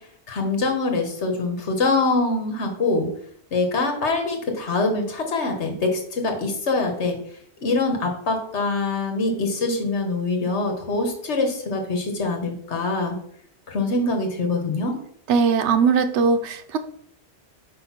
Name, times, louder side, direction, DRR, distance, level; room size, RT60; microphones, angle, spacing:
voice 1, 0.3-3.1 3.5-7.2 7.6-13.2 13.7-15.0, left 3 dB, 80° left, 4 dB, 1.5 m, -24 dB
voice 2, 15.3-16.8, right 5 dB, 90° right, 9 dB, 1.0 m, -20 dB
5.0 x 3.9 x 5.8 m, 0.63 s
omnidirectional pair, 1.1 m